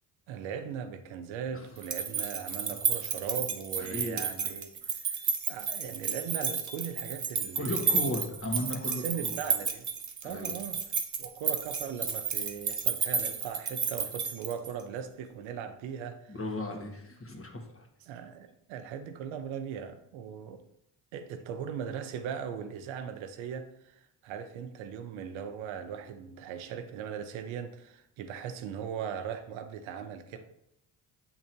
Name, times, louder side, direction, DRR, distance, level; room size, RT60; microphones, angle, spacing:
voice 1, 0.3-8.0 9.0-9.9 10.2-10.8 11.2-16.4 18.1-20.6 21.1-30.4, right 7 dB, 85° right, 8 dB, 0.8 m, -39 dB
sound 1, 1.8-14.8, right 6 dB, 40° right, 1.0 m, -32 dB
voice 2, 3.8-4.3 7.6-9.4 10.2-10.6 16.3-17.9, left 1 dB, 30° left, 2 dB, 1.8 m, -35 dB
7.9 x 3.8 x 4.5 m, 0.80 s
supercardioid pair, 55°, 46 cm